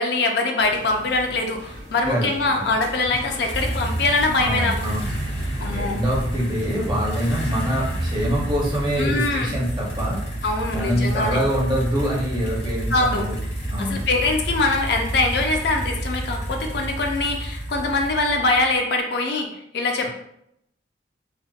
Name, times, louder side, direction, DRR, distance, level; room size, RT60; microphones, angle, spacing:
voice 1, 0.0-4.9 5.6-6.0 9.0-9.5 10.4-11.4 12.9-13.2 13.8-19.5 19.7-20.1, left 2 dB, 60° left, 3 dB, 0.4 m, -23 dB
sound 1, 0.6-16.0, equal, 60° right, 0.9 m, -41 dB
sound 2, 2.8-18.8, right 1 dB, 80° left, 1.2 m, -29 dB
voice 2, 4.4-5.1 5.7-10.2 10.7-13.4 13.7-14.1, equal, 25° right, -3 dB, 0.6 m, -25 dB
3.3 x 2.0 x 2.3 m, 0.76 s
head